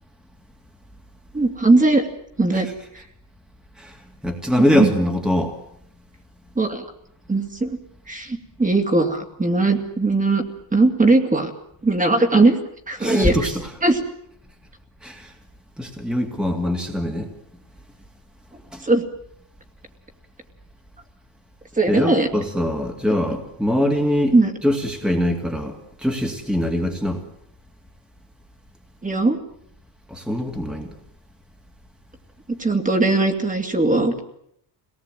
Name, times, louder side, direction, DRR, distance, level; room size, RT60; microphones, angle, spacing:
voice 1, 1.3-2.1 2.4-2.7 2.9-3.0 4.6-4.9 6.6-6.9 7.3-7.8 8.1-10.4 10.7-11.5 11.8-12.6 12.9-13.4 13.8-14.0 18.8-19.1 21.8-22.3 24.3-24.5 29.0-29.4 32.6-34.1, right 2 dB, 15° right, 6 dB, 2.6 m, -19 dB
voice 2, 3.8-5.6 13.0-13.7 15.0-15.3 15.8-17.3 18.7-18.8 21.9-24.3 24.6-27.2 30.1-30.9, left 1 dB, ahead, 4 dB, 2.4 m, -23 dB
25.5 x 19.0 x 9.2 m, 0.73 s
cardioid pair, 140°, 45 cm